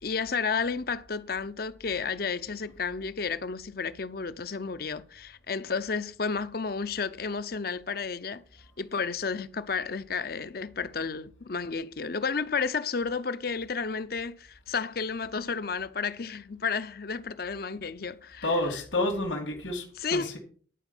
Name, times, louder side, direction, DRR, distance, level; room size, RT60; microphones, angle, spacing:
voice 1, 0.0-8.4 8.8-18.5 20.0-20.4, left 5 dB, 50° left, 0.6 m, -32 dB
voice 2, 18.4-20.4, left 1 dB, 80° left, 2.4 m, -29 dB
11.0 x 4.9 x 7.0 m
head